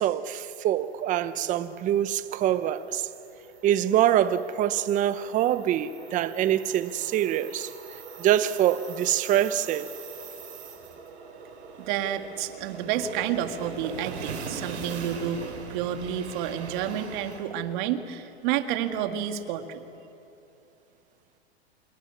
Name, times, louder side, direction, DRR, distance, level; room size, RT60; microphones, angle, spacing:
voice 1, 0.0-3.1 3.6-7.7 8.2-9.9, right 11 dB, 25° right, 0.8 m, -25 dB
sound 1, 0.9-17.4, right 5 dB, 90° right, 5.0 m, -42 dB
voice 2, 11.8-19.8, right 10 dB, 45° right, 2.0 m, -30 dB
27.0 x 21.5 x 9.9 m
hypercardioid pair, 135°, 33 cm